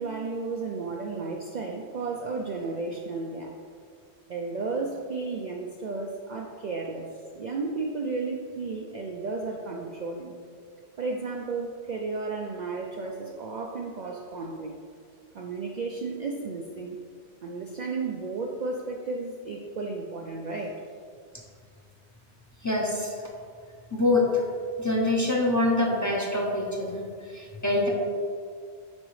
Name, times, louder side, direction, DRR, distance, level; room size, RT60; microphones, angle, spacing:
voice 1, 0.0-3.5 4.3-7.1 7.3-10.4 11.0-14.8 15.3-17.0 17.4-20.8, right 3 dB, 55° right, 1 dB, 0.5 m, -33 dB
voice 2, 22.6-23.1 23.9-24.4 24.8-27.0 27.3-27.9, left 2 dB, 20° left, -2 dB, 0.7 m, -25 dB
9.5 x 3.9 x 3.2 m, 2.1 s
omnidirectional pair, 1.1 m